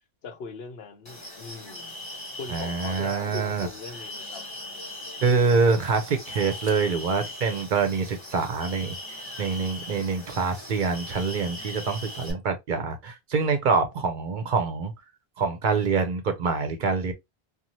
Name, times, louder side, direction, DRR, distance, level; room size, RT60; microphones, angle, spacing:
voice 1, 0.2-1.9 2.4-4.4, left 5 dB, 75° left, 0.9 m, -40 dB
sound 1, 1.0-12.3, left 1 dB, 30° left, 1.2 m, -40 dB
voice 2, 2.5-3.7 5.2-14.9 15.4-17.1, right 4 dB, 55° right, 0.7 m, -25 dB
2.6 x 2.3 x 2.9 m
omnidirectional pair, 1.0 m